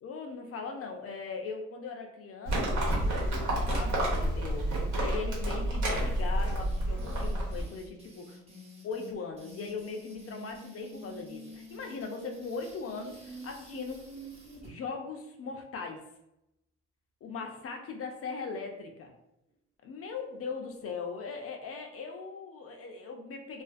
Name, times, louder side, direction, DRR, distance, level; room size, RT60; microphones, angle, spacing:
voice 1, 0.0-8.4 8.8-14.0 14.6-16.0 17.2-19.1 19.8-23.6, left 4 dB, 50° left, 3 dB, 0.4 m, -39 dB
Livestock farm animals working animals, 2.5-7.6, right 1 dB, 75° right, 1.0 m, -29 dB
sound 1, 6.4-14.7, right 1 dB, 20° right, 0.9 m, -48 dB
2.4 x 2.4 x 2.4 m, 0.86 s
cardioid pair, 90°, 30 cm